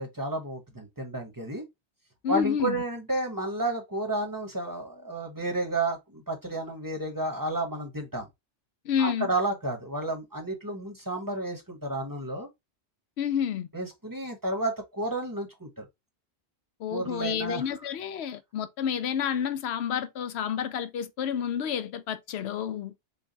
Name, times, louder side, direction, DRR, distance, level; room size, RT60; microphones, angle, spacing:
voice 1, 0.0-1.6 2.3-8.3 9.0-12.5 13.7-15.8 16.9-17.6, right 2 dB, 20° right, 0.8 m, -31 dB
voice 2, 2.2-2.8 8.9-9.3 13.2-13.7 16.8-22.9, left 8 dB, 70° left, 0.8 m, -29 dB
3.8 x 2.3 x 3.9 m
omnidirectional pair, 1.2 m